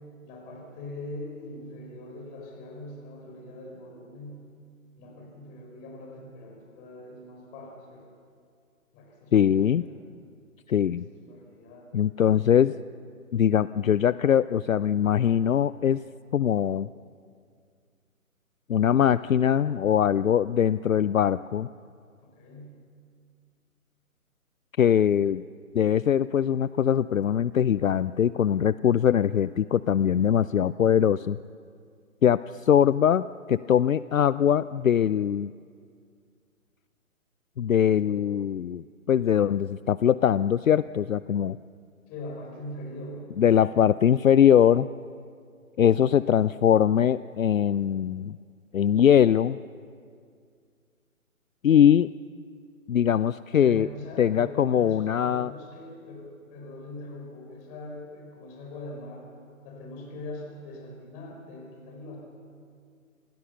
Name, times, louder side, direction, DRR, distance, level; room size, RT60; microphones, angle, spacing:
voice 1, 0.2-4.4 5.0-8.0 8.9-9.9 10.9-11.9 12.2-12.7 22.2-22.7 42.1-43.4 53.6-59.2 59.6-62.2, left 2 dB, 20° left, 0 dB, 4.6 m, -42 dB
voice 2, 9.3-9.8 10.7-11.1 11.9-12.7 13.3-16.0 16.3-16.9 18.7-21.7 24.8-25.4 25.7-31.4 32.2-35.5 37.6-41.6 43.4-44.9 45.8-48.4 48.7-49.6 51.6-52.1 52.9-53.9 54.2-55.5, left 9 dB, 65° left, 17 dB, 0.5 m, -22 dB
26.5 x 17.0 x 6.8 m, 2.2 s
figure-of-eight pair, 140°, 43 cm